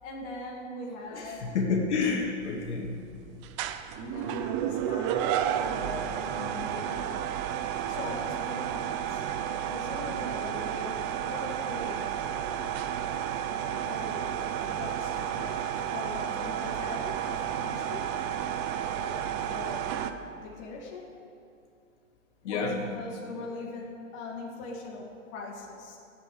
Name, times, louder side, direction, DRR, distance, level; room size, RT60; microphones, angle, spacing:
voice 1, 0.0-1.5 4.0-5.3 5.6-7.3 7.8-9.2 9.7-12.1 13.7-18.1 19.0-19.9 20.3-21.1 22.4-26.0, left 3 dB, 35° left, -3 dB, 2.5 m, -41 dB
voice 2, 1.1-2.9 22.4-22.8, left 4 dB, 60° left, -1 dB, 2.6 m, -29 dB
sound 1, 2.4-20.1, right 9 dB, 25° right, 0.5 m, -32 dB
14.5 x 8.6 x 8.1 m, 2.5 s
hypercardioid pair, 135°, 38 cm